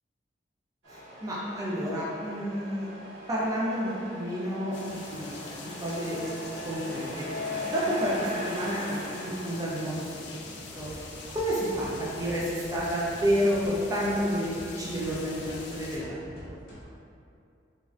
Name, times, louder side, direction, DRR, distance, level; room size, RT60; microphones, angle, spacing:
Truck, 0.8-9.8, left 1 dB, 70° right, 1.1 m, -39 dB
voice 1, 0.9-2.9 3.3-6.2 6.6-7.3 7.6-10.9 11.3-15.4 15.7-16.2 16.4-16.6, equal, 20° right, -7 dB, 0.4 m, -30 dB
sound 1, 4.7-16.0, left 3 dB, 65° left, 0.4 m, -44 dB
sound 2, 10.8-16.8, equal, 50° left, 0.7 m, -47 dB
3.1 x 2.4 x 2.4 m, 2.5 s
head